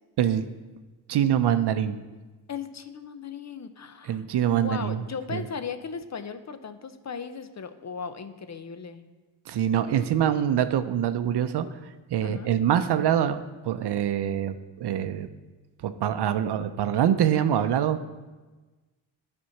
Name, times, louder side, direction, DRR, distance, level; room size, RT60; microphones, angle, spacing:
voice 1, 1.1-2.0 4.0-5.0 5.3-5.4 9.5-11.7 12.1-15.3 15.8-18.0, right 10 dB, 60° right, 11 dB, 0.6 m, -24 dB
voice 2, 2.5-4.2 4.5-9.0 12.2-12.5, left 6 dB, 40° left, 10 dB, 0.7 m, -37 dB
8.4 x 4.4 x 5.8 m, 1.2 s
supercardioid pair, 50°, 45 cm